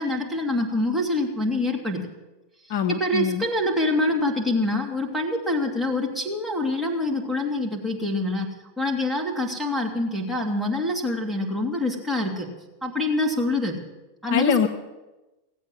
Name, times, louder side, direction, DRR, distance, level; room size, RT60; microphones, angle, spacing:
voice 1, 0.0-2.0 2.7-8.5 8.8-12.5 12.8-13.8 14.2-14.5, left 2 dB, 5° right, -1 dB, 2.5 m, -25 dB
voice 2, 2.7-3.4 14.3-14.7, left 8 dB, 50° left, 7 dB, 0.8 m, -23 dB
17.0 x 8.2 x 7.8 m, 1.1 s
figure-of-eight pair, 90°, 0 cm